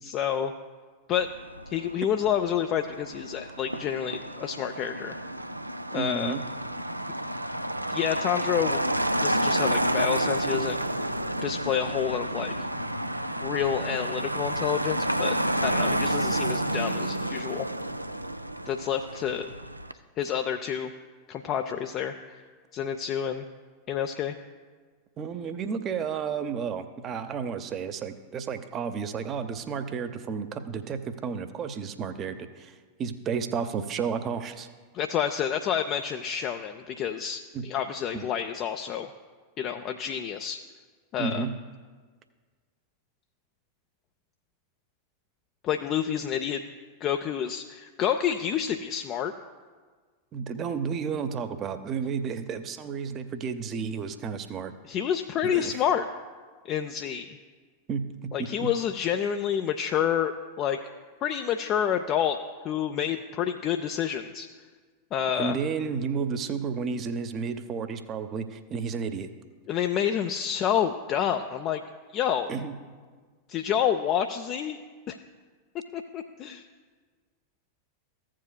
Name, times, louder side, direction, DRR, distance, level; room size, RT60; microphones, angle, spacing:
voice 1, 0.0-0.5 1.1-1.3 1.7-5.2 5.9-6.4 7.9-8.8 9.2-10.8 11.4-12.7 13.4-15.4 15.6-17.7 18.7-19.5 20.2-20.9 21.3-22.4 22.7-23.5 23.9-24.3 34.9-39.1 39.6-40.6 41.1-41.5 45.6-46.6 47.0-49.3 54.9-56.1 56.7-57.4 58.3-60.8 61.2-62.4 62.6-64.5 65.1-65.6 69.7-71.8 72.1-72.5 73.5-74.8 75.1-75.2 75.9-76.6, left 9 dB, 35° left, 6 dB, 0.4 m, -28 dB
Motor vehicle (road), 1.2-19.9, right 1 dB, 85° right, 0.3 m, -30 dB
voice 2, 5.9-6.4 25.2-34.7 37.5-37.7 38.1-38.3 41.2-41.5 50.3-54.7 55.4-55.8 57.9-58.1 58.4-58.5 65.4-69.3 72.5-72.8, right 6 dB, 30° right, 10 dB, 0.6 m, -32 dB
15.5 x 7.4 x 2.2 m, 1.5 s
figure-of-eight pair, 90°, 0 cm